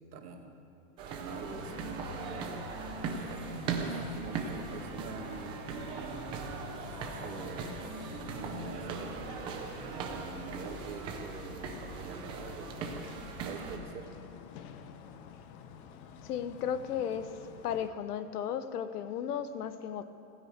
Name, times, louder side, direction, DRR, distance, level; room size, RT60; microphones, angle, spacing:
voice 1, 0.1-0.6 1.1-2.7 3.3-5.7 6.0-6.2 7.0-9.1 9.8-13.0 13.4-14.1, right 5 dB, 80° right, 3 dB, 2.1 m, -45 dB
sound 1, 1.0-13.8, right 5 dB, 10° right, 0.4 m, -39 dB
sound 2, 1.3-17.9, left 7 dB, 35° left, 0.8 m, -49 dB
voice 2, 16.2-17.3 17.6-20.0, left 8 dB, 80° left, 12 dB, 1.1 m, -34 dB
16.0 x 10.0 x 8.1 m, 2.9 s
supercardioid pair, 155°, 46 cm